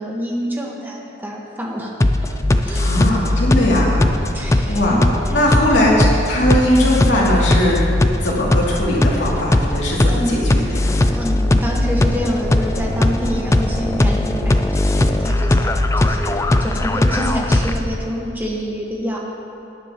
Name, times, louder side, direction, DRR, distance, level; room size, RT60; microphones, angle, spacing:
voice 1, 0.0-2.0 2.6-3.4 4.3-5.0 10.1-10.6 11.1-19.2, equal, 10° right, -2 dB, 1.4 m, -27 dB
sound 1, 2.0-18.0, left 1 dB, 15° left, 0.4 m, -18 dB
voice 2, 2.8-4.3 4.7-5.0 5.3-7.8 8.2-10.9, left 1 dB, 90° left, -5 dB, 2.7 m, -19 dB
18.0 x 10.5 x 3.0 m, 2.7 s
head